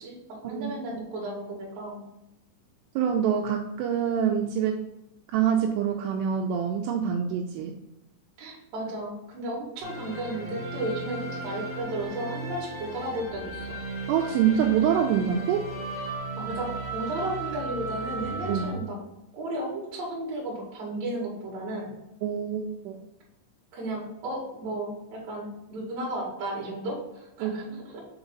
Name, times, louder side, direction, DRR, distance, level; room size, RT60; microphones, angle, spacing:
voice 1, 0.0-2.0 8.4-13.8 16.4-19.0 19.3-21.9 23.7-28.0, right 1 dB, 50° right, -4 dB, 2.4 m, -34 dB
voice 2, 0.5-1.0 3.0-4.8 5.3-7.7 14.1-15.7 18.5-18.7 22.2-23.0 27.4-27.7, right 8 dB, 85° right, 2 dB, 2.4 m, -26 dB
sound 1, 9.8-18.7, right 2 dB, 30° right, 1.3 m, -36 dB
7.1 x 4.0 x 3.8 m, 0.90 s
omnidirectional pair, 5.3 m